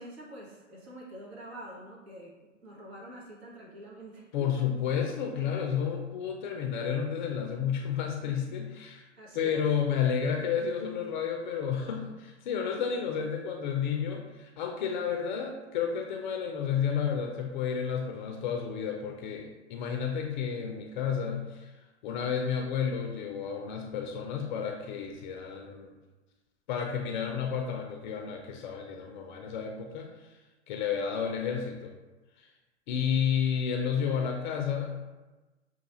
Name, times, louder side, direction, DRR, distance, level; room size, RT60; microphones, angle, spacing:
voice 1, 0.0-2.4 2.6-4.7 9.2-9.6, right 1 dB, 60° right, -3 dB, 1.2 m, -46 dB
voice 2, 4.3-9.1 9.3-21.7 22.0-25.9 26.7-30.3 30.7-31.9 32.4-32.5 32.9-34.9, left 7 dB, 40° left, 2 dB, 0.5 m, -31 dB
6.3 x 2.3 x 2.9 m, 1.2 s
figure-of-eight pair, 95°, 36 cm